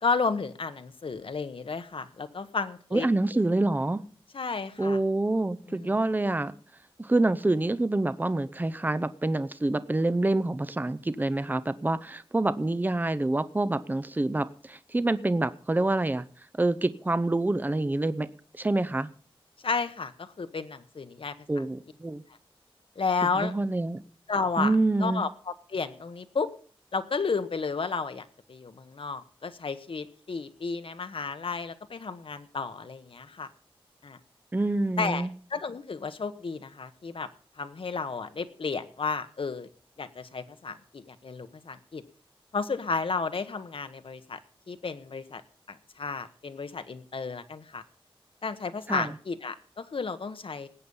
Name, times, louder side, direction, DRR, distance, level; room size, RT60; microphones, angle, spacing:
voice 1, 0.0-3.1 4.3-5.0 5.7-5.9 19.6-21.3 23.0-23.5 24.3-26.5 26.9-33.5 34.0-34.2 35.0-37.3 37.6-39.7 40.0-42.0 42.5-44.4 44.7-45.4 45.7-47.8 48.4-50.7, left 4 dB, 65° left, 10 dB, 1.1 m, -32 dB
voice 2, 2.9-4.0 4.8-6.5 7.0-16.3 16.6-18.3 18.5-19.1 21.5-22.2 23.3-24.0 24.6-25.3 34.5-35.3 48.9-49.1, right 2 dB, 20° right, 13 dB, 0.7 m, -27 dB
19.0 x 8.5 x 5.4 m, 0.43 s
wide cardioid pair, 105°, 10 cm